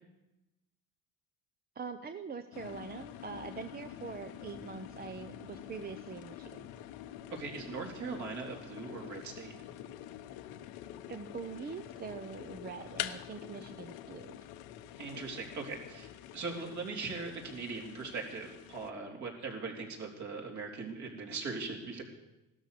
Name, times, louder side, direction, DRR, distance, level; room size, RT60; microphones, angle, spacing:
voice 1, 1.7-6.7 11.1-14.5, right 5 dB, 25° right, 8 dB, 0.8 m, -43 dB
sound 1, 2.5-18.9, left 12 dB, 75° left, 1.1 m, -46 dB
voice 2, 7.3-9.5 15.0-22.0, right 4 dB, 50° right, 1 dB, 3.8 m, -40 dB
16.5 x 12.5 x 6.8 m, 0.99 s
cardioid pair, 120°, 37 cm